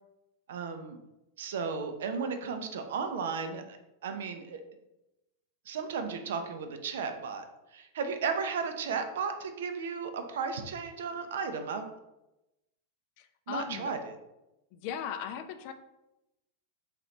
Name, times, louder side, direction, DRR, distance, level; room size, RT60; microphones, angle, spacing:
voice 1, 0.5-1.0 1.4-3.8 4.0-4.6 5.7-7.5 7.7-11.9 13.5-14.2, right 5 dB, 60° right, 7 dB, 0.4 m, -34 dB
voice 2, 13.2-13.9 14.7-15.7, left 8 dB, 45° left, 9 dB, 0.3 m, -38 dB
3.7 x 2.9 x 3.1 m, 0.93 s
figure-of-eight pair, 90°, 0 cm